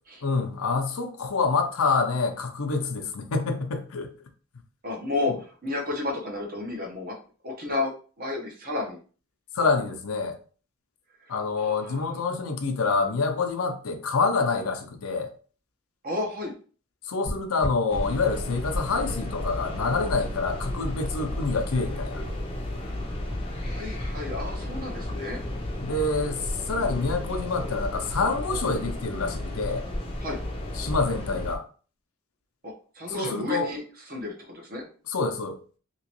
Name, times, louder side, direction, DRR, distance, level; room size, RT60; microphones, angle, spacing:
voice 1, 0.2-4.1 9.5-10.4 11.3-15.3 17.1-22.2 25.8-29.8 30.7-31.6 33.1-33.7 35.1-35.6, left 4 dB, 80° left, 0.6 m, -27 dB
voice 2, 4.8-7.1 7.4-7.9 8.2-9.0 11.2-11.3 11.6-12.1 16.0-16.5 23.6-25.4 26.8-27.0 30.2-30.4 32.6-34.9, left 2 dB, 45° right, 1.0 m, -32 dB
sound 1, 17.3-25.6 25.8-27.5 27.8-31.1, left 1 dB, 80° right, 1.6 m, -37 dB
sound 2, 17.9-31.6, left 1 dB, 25° left, 0.5 m, -33 dB
3.0 x 3.0 x 2.9 m
head